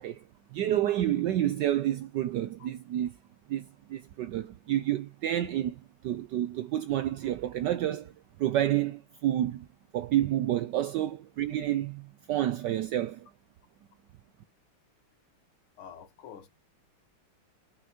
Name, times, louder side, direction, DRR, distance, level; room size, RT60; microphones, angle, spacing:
voice 1, 0.0-3.1 3.5-9.7 9.9-13.3, right 12 dB, 80° right, 1.0 m, -29 dB
voice 2, 15.8-16.5, left 8 dB, 85° left, 2.0 m, -47 dB
6.1 x 5.6 x 2.8 m
omnidirectional pair, 2.3 m